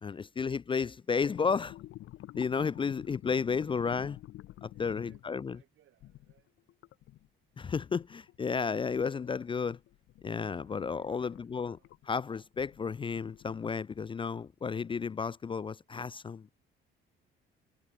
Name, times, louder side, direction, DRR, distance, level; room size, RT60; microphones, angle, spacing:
voice 1, 0.0-1.8 2.3-4.2 4.6-5.6 7.6-9.8 10.2-11.8 12.1-16.5, left 5 dB, 25° left, 0.3 m, -32 dB
sound 1, 1.1-5.4 6.0-7.3 7.6-13.7, left 15 dB, 85° left, 1.8 m, -50 dB
voice 2, 4.7-6.6 10.5-12.0, right 13 dB, 80° right, 3.9 m, -66 dB
cardioid pair, 90°, 20 cm